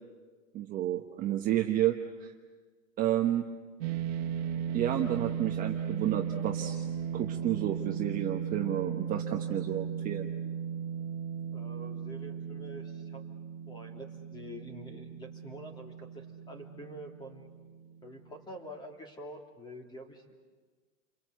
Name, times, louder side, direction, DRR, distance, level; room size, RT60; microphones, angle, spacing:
voice 1, 0.5-2.3 3.0-3.5 4.7-6.8 7.1-10.3, right 12 dB, 20° right, 2 dB, 1.1 m, -31 dB
sound 1, 3.8-18.2, right 8 dB, 55° right, 1.8 m, -37 dB
voice 2, 11.5-13.2 13.7-17.5 18.0-20.3, equal, 10° left, 3 dB, 3.0 m, -47 dB
29.5 x 23.5 x 8.2 m, 1.4 s
supercardioid pair, 155°, 39 cm